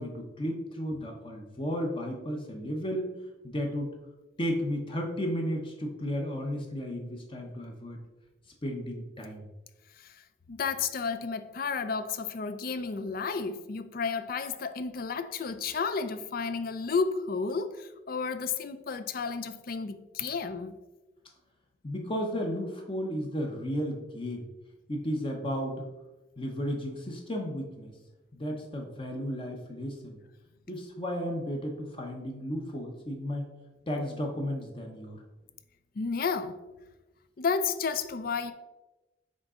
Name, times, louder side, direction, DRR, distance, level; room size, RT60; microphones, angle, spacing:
voice 1, 0.0-3.1 3.4-3.9 4.4-8.0 8.6-9.5 21.8-24.5 24.9-25.8 26.4-27.9 28.3-30.2 30.7-33.5 33.9-35.2, equal, 30° left, 0.8 m, -33 dB
voice 2, 10.5-20.8 36.0-36.6 37.4-38.5, left 5 dB, 50° left, 0.4 m, -32 dB
6.3 x 4.1 x 3.7 m
head